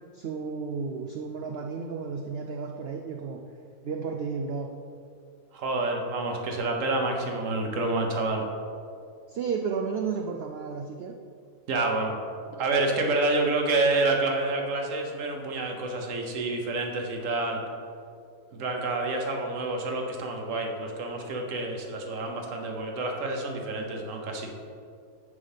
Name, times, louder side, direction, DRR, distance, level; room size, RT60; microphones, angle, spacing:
voice 1, 0.1-3.4 3.8-4.7 9.3-11.1, right 5 dB, 80° right, 3 dB, 0.5 m, -32 dB
voice 2, 5.5-8.5 11.7-12.2 12.6-17.6 18.5-24.5, right 2 dB, 60° right, 2 dB, 1.3 m, -28 dB
9.6 x 3.4 x 5.5 m, 2.3 s
omnidirectional pair, 1.6 m